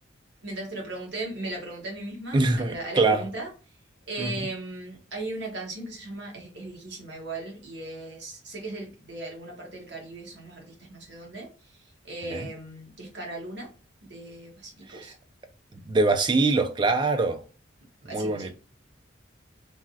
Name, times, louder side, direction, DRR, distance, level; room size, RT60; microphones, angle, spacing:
voice 1, 0.4-3.8 4.1-13.7 14.1-15.1 18.0-18.5, right 2 dB, 60° right, 1.2 m, -37 dB
voice 2, 2.3-3.3 4.2-4.3 12.3-12.4 14.9-15.1 15.9-17.4 18.1-18.5, right 3 dB, 25° right, 0.3 m, -23 dB
3.3 x 2.2 x 2.6 m
head